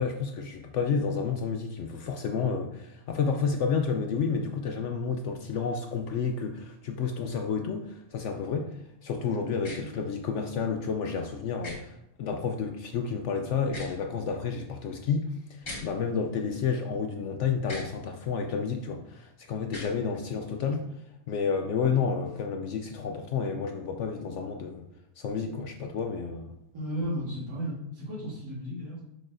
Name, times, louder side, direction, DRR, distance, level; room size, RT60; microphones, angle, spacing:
voice 1, 0.0-8.7 9.0-20.9 21.3-24.8 25.2-26.6, left 5 dB, 75° left, 5 dB, 0.6 m, -30 dB
sound 1, 9.6-9.8 11.6-11.8 13.6-14.0 15.6-15.8 17.6-17.9 19.6-19.9, left 1 dB, 45° left, 2.8 m, -39 dB
voice 2, 26.7-29.0, equal, 80° right, -8 dB, 2.6 m, -34 dB
6.8 x 6.1 x 2.6 m, 0.82 s
omnidirectional pair, 1.8 m